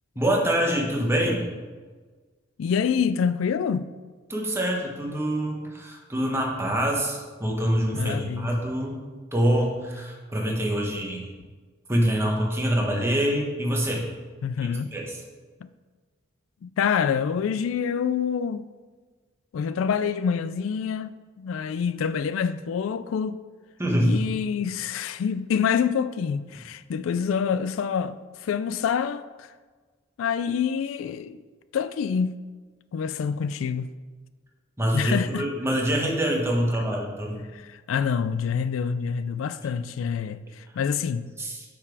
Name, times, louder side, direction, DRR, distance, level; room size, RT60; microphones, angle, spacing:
voice 1, 0.1-1.4 4.3-9.0 9.3-11.3 11.9-14.0 14.9-15.2 23.8-24.2 34.8-37.4 41.4-41.6, equal, 15° right, 1.2 m, -25 dB
voice 2, 2.6-3.9 7.9-8.5 14.4-14.9 15.6-15.7 16.6-18.7 19.5-23.4 24.0-29.5 30.2-31.4 31.7-32.3 32.9-33.9 34.9-35.5 37.5-41.3, left 7 dB, 85° left, 0.3 m, -27 dB
6.9 x 5.7 x 4.8 m
head